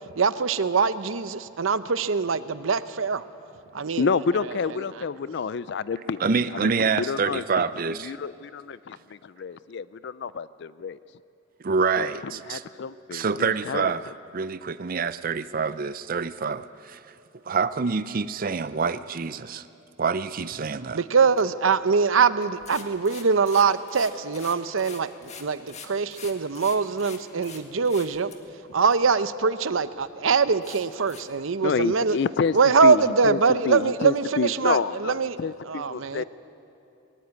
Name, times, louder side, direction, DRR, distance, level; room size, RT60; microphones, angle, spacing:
voice 1, 0.2-3.2 3.7-4.1 20.9-28.3 28.7-32.2 32.5-35.4 35.7-36.2, right 5 dB, 85° right, 13 dB, 0.7 m, -23 dB
voice 2, 4.0-7.6 8.0-11.0 12.0-12.1 12.5-13.8 31.6-36.2, left 5 dB, 60° left, 17 dB, 0.4 m, -29 dB
voice 3, 6.2-8.1 11.6-12.6 13.1-14.0 14.3-17.0 17.5-19.7 20.0-21.0, right 5 dB, 45° right, 14 dB, 0.5 m, -26 dB
sound 1, 22.4-27.6 27.8-28.4 28.9-29.0 29.6-29.7 30.0-30.1 30.6-31.2, left 6 dB, 35° left, 1.8 m, -43 dB
21.0 x 16.5 x 9.5 m, 2.7 s
head